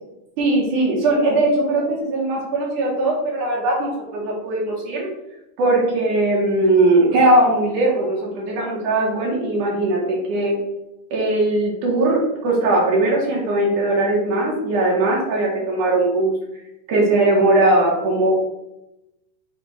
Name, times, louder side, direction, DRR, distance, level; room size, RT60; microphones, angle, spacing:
voice 1, 0.4-5.1 5.6-10.6 11.1-16.3 16.9-18.3, right 2 dB, 75° right, -2 dB, 2.2 m, -19 dB
6.3 x 2.2 x 3.9 m, 0.90 s
omnidirectional pair, 3.8 m